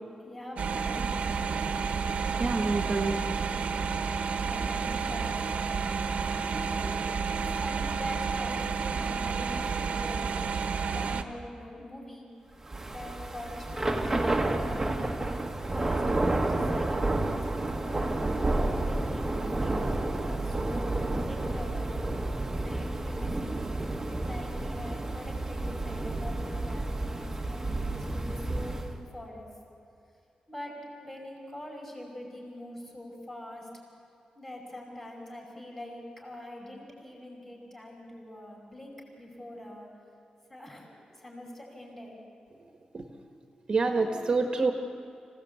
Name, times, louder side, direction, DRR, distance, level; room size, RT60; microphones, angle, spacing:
voice 1, 0.2-1.4 4.4-5.8 6.5-7.0 7.3-10.3 10.6-12.3 12.9-15.1 15.7-19.3 19.6-22.0 22.6-23.6 24.2-29.5 30.5-33.7 34.4-39.9 40.5-42.2, left 1 dB, 20° left, -1 dB, 5.6 m, -44 dB
sound 1, 0.6-11.2, right 5 dB, 75° right, 1.2 m, -30 dB
voice 2, 2.4-3.2 42.9-43.0 43.7-44.7, right 3 dB, 40° right, 3 dB, 1.4 m, -27 dB
Thunder / Rain, 12.6-29.0, right 2 dB, 15° right, 1.4 m, -30 dB
26.5 x 16.5 x 8.3 m, 2.5 s
wide cardioid pair, 170°, 2 cm